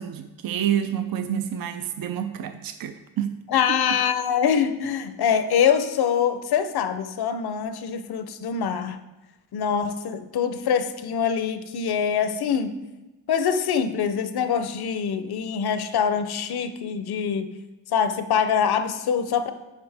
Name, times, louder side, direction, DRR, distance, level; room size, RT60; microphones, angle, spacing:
voice 1, 0.0-3.3, right 9 dB, 65° right, 8 dB, 0.5 m, -28 dB
voice 2, 3.5-9.0 9.5-12.7 13.3-17.5 17.9-19.5, left 7 dB, 85° left, 10 dB, 0.6 m, -24 dB
8.9 x 5.0 x 3.4 m, 1.1 s
cardioid pair, 65°, 37 cm